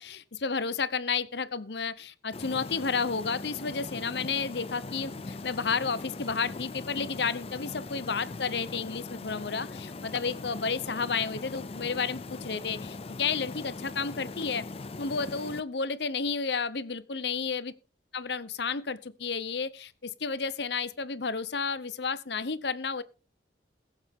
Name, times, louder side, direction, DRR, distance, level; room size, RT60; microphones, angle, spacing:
voice 1, 0.0-14.7 15.0-17.7 18.1-23.0, left 5 dB, 70° left, 0.9 m, -32 dB
sound 1, 2.3-15.6, left 3 dB, 35° left, 0.5 m, -40 dB
21.5 x 7.1 x 3.7 m
head